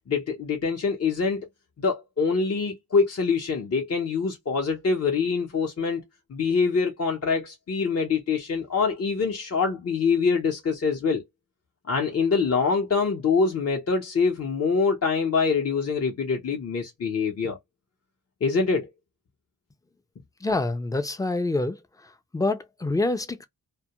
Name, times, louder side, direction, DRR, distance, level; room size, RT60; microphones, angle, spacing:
voice 1, 0.1-1.5 1.8-6.0 6.3-11.2 11.9-17.6 18.4-18.9, left 5 dB, 40° left, 0.7 m, -25 dB
voice 2, 20.4-23.5, left 2 dB, 10° left, 0.4 m, -27 dB
2.2 x 2.1 x 2.9 m
cardioid pair, 65°, 36 cm